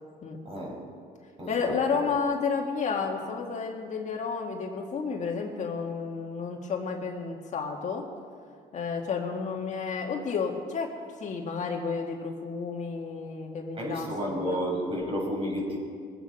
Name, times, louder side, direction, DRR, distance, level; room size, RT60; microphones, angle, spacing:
voice 1, 0.4-0.8 1.4-2.0 13.8-15.8, equal, 35° right, -1 dB, 4.9 m, -31 dB
voice 2, 1.5-8.1 8.7-10.9 11.2-14.6, left 5 dB, 45° left, 1 dB, 1.8 m, -31 dB
22.0 x 8.9 x 5.3 m, 2.2 s
cardioid pair, 110°, 17 cm